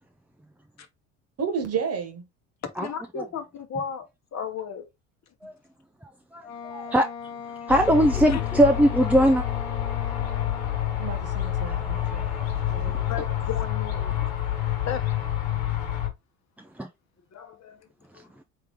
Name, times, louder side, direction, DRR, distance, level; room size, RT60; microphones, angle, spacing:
voice 1, 1.4-2.2 11.0-12.3 12.7-13.1, right 6 dB, 40° right, 1.3 m, -32 dB
voice 2, 2.6-4.9 5.4-5.5 8.3-8.4 10.2-11.1 13.1-14.2 14.8-15.2 17.3-17.9 18.1-18.3, left 7 dB, 45° left, 1.0 m, -35 dB
voice 3, 6.3-7.1 7.7-9.4 11.6-12.5 16.8-16.9, equal, 5° right, 0.4 m, -21 dB
Wind instrument woodwind instrument, 6.4-10.9, left 7 dB, 90° left, 0.8 m, -40 dB
sound 1, 7.7-16.1, left 11 dB, 70° left, 1.3 m, -28 dB
3.3 x 3.2 x 3.5 m
hypercardioid pair, 70°, 39 cm